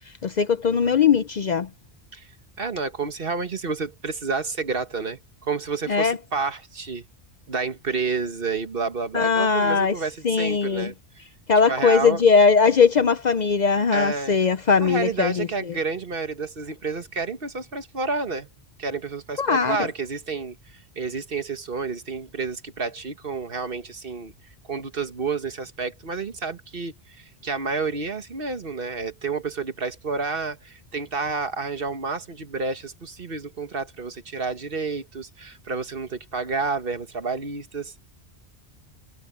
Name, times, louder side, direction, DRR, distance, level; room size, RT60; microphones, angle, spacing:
voice 1, 0.2-1.7 5.9-6.2 9.1-9.9 10.2-10.9 11.5-15.5 19.4-19.8, left 5 dB, 50° left, 0.6 m, -20 dB
voice 2, 2.6-7.0 7.5-11.2 11.7-12.2 13.9-14.4 14.8-18.5 18.8-24.3 24.7-38.0, right 4 dB, 60° right, 1.7 m, -30 dB
omnidirectional pair, 1.1 m